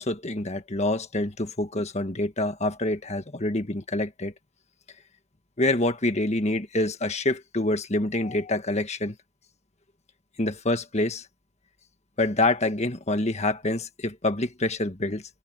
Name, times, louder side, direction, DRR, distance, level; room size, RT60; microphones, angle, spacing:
voice 1, 0.0-4.3 5.6-9.1 10.4-11.2 12.2-15.2, left 2 dB, 30° left, 1.6 m, -26 dB
head